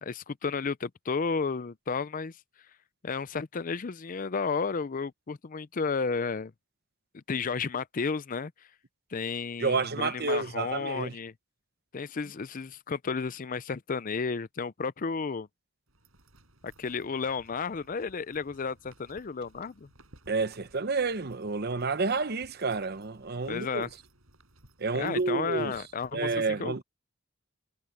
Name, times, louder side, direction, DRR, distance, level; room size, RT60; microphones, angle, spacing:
voice 1, 0.0-2.3 3.0-6.5 7.1-8.5 9.1-11.3 11.9-15.5 16.6-19.9 23.5-23.9 24.9-26.8, left 5 dB, 40° left, 0.5 m, -32 dB
voice 2, 9.6-11.1 20.3-23.9 24.8-25.7 26.1-26.8, right 4 dB, 50° right, 0.9 m, -29 dB
sound 1, 15.9-26.1, right 1 dB, 70° right, 7.8 m, -60 dB
head